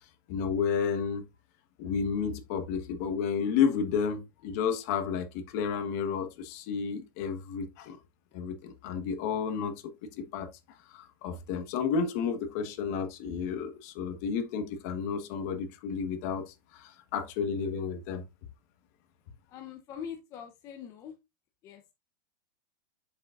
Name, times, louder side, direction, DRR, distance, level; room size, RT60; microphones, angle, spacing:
voice 1, 0.3-1.2 1.8-8.0 8.3-10.5 10.9-18.2, left 6 dB, 50° left, 1.3 m, -31 dB
voice 2, 19.5-21.1 21.6-21.8, left 8 dB, 30° left, 0.8 m, -42 dB
7.7 x 6.9 x 2.5 m
supercardioid pair, 155°, 11 cm